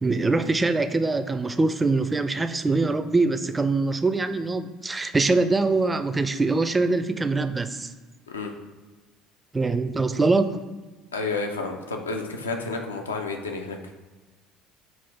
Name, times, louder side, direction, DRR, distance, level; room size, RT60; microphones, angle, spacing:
voice 1, 0.0-7.9 9.5-10.6, right 3 dB, 20° right, 10 dB, 0.3 m, -23 dB
voice 2, 11.1-13.8, left 3 dB, 85° left, 3 dB, 0.5 m, -30 dB
5.6 x 2.5 x 3.4 m, 1.3 s
figure-of-eight pair, 60°, 0 cm